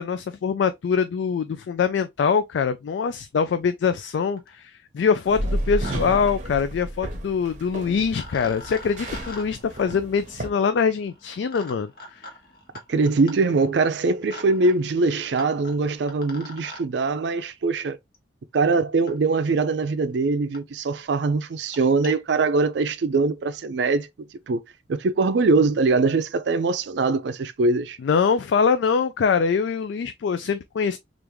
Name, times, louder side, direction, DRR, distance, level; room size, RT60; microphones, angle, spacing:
voice 1, 0.0-11.9 28.0-31.0, left 6 dB, 80° left, 0.3 m, -23 dB
sound 1, 3.8-3.9 4.1-4.6 5.4-6.0 6.2-6.3 7.6-7.7 8.1-16.8 18.1-18.2 19.1-19.2 19.8-19.9 20.1-20.2 20.5-20.6 20.9-21.1 21.5-22.1, left 2 dB, 55° left, 1.0 m, -44 dB
sound 2, 5.3-10.5, right 1 dB, 40° right, 0.7 m, -32 dB
voice 2, 12.9-18.0 18.5-24.1 24.5-24.6 24.9-28.0, right 3 dB, 75° right, 0.4 m, -22 dB
3.4 x 2.5 x 2.9 m
head